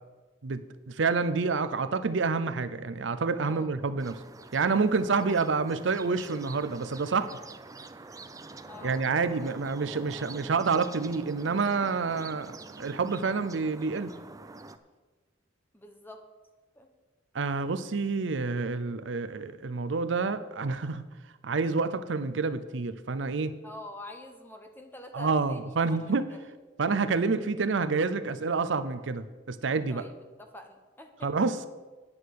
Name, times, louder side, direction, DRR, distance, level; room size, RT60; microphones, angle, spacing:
voice 1, 0.4-4.2 4.5-7.3 8.8-14.1 17.3-21.1 21.4-23.5 25.1-26.3 26.8-30.0 31.2-31.7, right 4 dB, 75° right, 12 dB, 0.6 m, -28 dB
voice 2, 3.4-3.7 5.1-5.4 8.6-9.0 15.7-16.2 16.8-16.9 23.6-26.4 26.9-27.0 29.9-30.1 30.4-31.3, left 1 dB, 10° left, 4 dB, 1.2 m, -46 dB
sound 1, 4.0-14.8, right 3 dB, 20° right, 0.5 m, -46 dB
9.4 x 8.7 x 6.5 m, 1.2 s
head